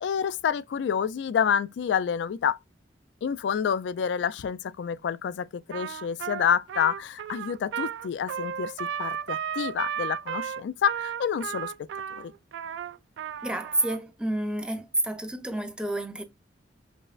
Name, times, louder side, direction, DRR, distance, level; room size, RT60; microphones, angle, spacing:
voice 1, 0.0-2.6 3.2-12.3, left 7 dB, 80° left, 0.3 m, -28 dB
Trumpet, 5.7-14.0, right 8 dB, 85° right, 0.3 m, -34 dB
voice 2, 13.4-16.2, right 1 dB, 5° right, 0.4 m, -29 dB
5.2 x 2.1 x 2.3 m
head